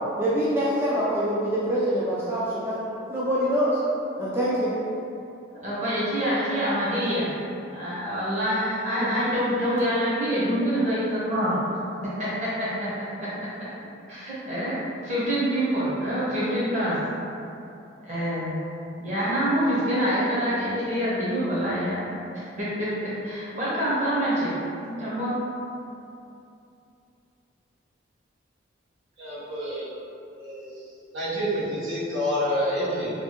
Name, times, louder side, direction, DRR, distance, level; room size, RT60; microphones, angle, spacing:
voice 1, 0.2-2.8 3.1-3.8 4.2-4.8, equal, 10° right, -8 dB, 0.3 m, -25 dB
voice 2, 5.5-7.3 7.7-11.6 12.2-13.3 14.1-17.0 18.0-18.6 19.0-22.2 22.6-24.6 24.8-25.4, equal, 40° right, -10 dB, 1.0 m, -26 dB
voice 3, 29.2-29.8 30.3-30.7 31.1-33.1, equal, 85° right, -9 dB, 1.0 m, -28 dB
3.2 x 2.4 x 2.9 m, 2.7 s
head